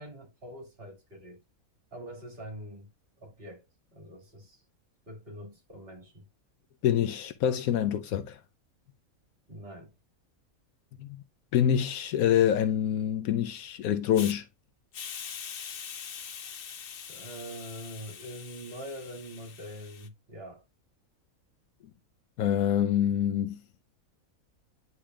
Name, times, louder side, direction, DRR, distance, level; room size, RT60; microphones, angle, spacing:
voice 1, 0.0-1.4 1.9-2.9 3.2-3.6 3.9-4.6 5.1-6.3 9.5-9.9 17.1-20.6, equal, 45° right, 2.6 m, -44 dB
voice 2, 6.8-8.4 11.0-11.2 11.5-14.4 22.4-23.6, left 10 dB, 85° left, 1.1 m, -26 dB
Hiss, 14.1-14.3 14.9-20.1, left 8 dB, 50° left, 0.7 m, -43 dB
10.0 x 4.2 x 2.3 m
omnidirectional pair, 1.5 m